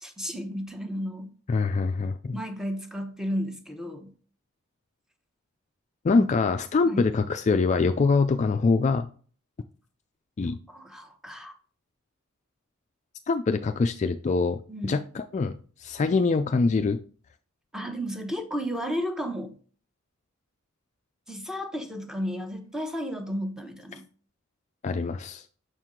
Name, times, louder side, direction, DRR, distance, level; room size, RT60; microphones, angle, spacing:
voice 1, 0.0-1.3 2.3-4.1 6.1-6.2 6.8-7.1 10.7-11.5 14.7-15.0 17.7-19.5 21.3-24.0, equal, 5° right, 1.0 m, -33 dB
voice 2, 1.5-2.4 6.0-9.1 10.4-10.6 13.3-14.6 14.8-15.5 15.8-17.0 24.8-25.4, left 4 dB, 35° left, 0.3 m, -24 dB
6.5 x 4.6 x 3.7 m
head